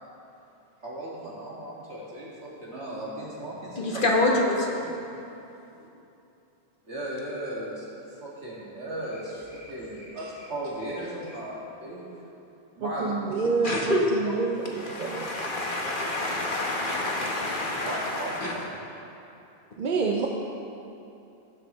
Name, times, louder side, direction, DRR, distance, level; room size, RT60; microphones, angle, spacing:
voice 1, 0.8-4.5 5.2-5.4 6.8-12.2 12.8-13.3 14.2-14.3 17.8-18.5, right 1 dB, 80° right, -6 dB, 2.5 m, -36 dB
voice 2, 3.7-4.6 13.6-14.0 14.8-18.5, left 2 dB, 50° left, -1 dB, 1.3 m, -27 dB
voice 3, 12.8-15.5 19.8-20.3, right 4 dB, 50° right, 0 dB, 0.7 m, -28 dB
16.5 x 7.8 x 3.2 m, 2.8 s
omnidirectional pair, 1.1 m